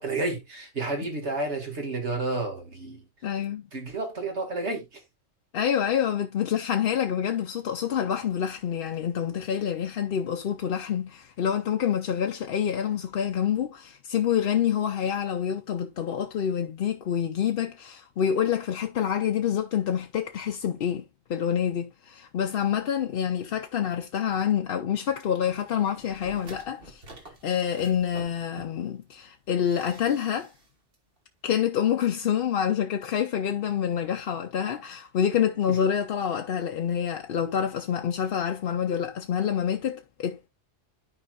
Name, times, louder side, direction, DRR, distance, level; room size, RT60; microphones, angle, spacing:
voice 1, 0.0-3.0 3.7-5.0 35.7-35.8, right 2 dB, 70° right, 2.2 m, -31 dB
voice 2, 3.2-3.7 5.5-21.0 21.3-27.0 27.4-30.5 31.4-40.5, left 8 dB, 60° left, 0.8 m, -27 dB
sound 1, 26.0-29.0 29.6-30.7 30.9-31.0, right 2 dB, 50° right, 1.8 m, -48 dB
13.5 x 4.8 x 2.3 m
omnidirectional pair, 1.2 m